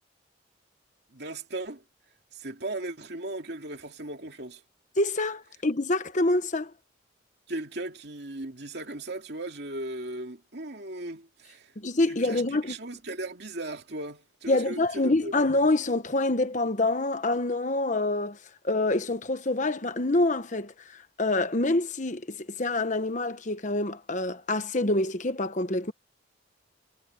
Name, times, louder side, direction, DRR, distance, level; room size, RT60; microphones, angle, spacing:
voice 1, 1.1-1.8 2.3-4.6 7.5-11.7 12.1-15.4, right 2 dB, 60° right, 2.7 m, -37 dB
voice 2, 5.0-6.7 11.8-12.7 14.5-18.4 18.6-25.9, left 2 dB, 40° left, 1.2 m, -26 dB
head